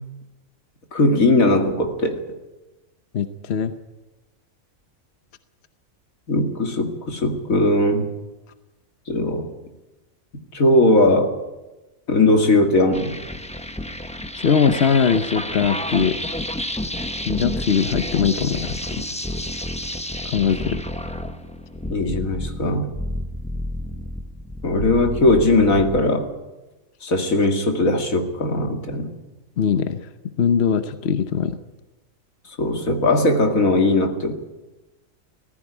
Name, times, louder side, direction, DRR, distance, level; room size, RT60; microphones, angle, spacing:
voice 1, 0.9-2.2 6.3-8.1 9.1-9.5 10.5-11.4 12.1-13.1 21.9-22.9 24.6-26.3 27.0-29.1 32.6-34.3, left 2 dB, 80° left, 4 dB, 2.7 m, -19 dB
voice 2, 3.1-3.7 14.3-16.2 17.3-19.0 20.2-20.8 29.6-30.0 30.4-31.6, left 7 dB, 55° left, 10 dB, 1.1 m, -21 dB
sound 1, 12.9-26.0, left 1 dB, 5° left, 0.9 m, -30 dB
19.0 x 15.0 x 9.9 m, 1.1 s
omnidirectional pair, 1.4 m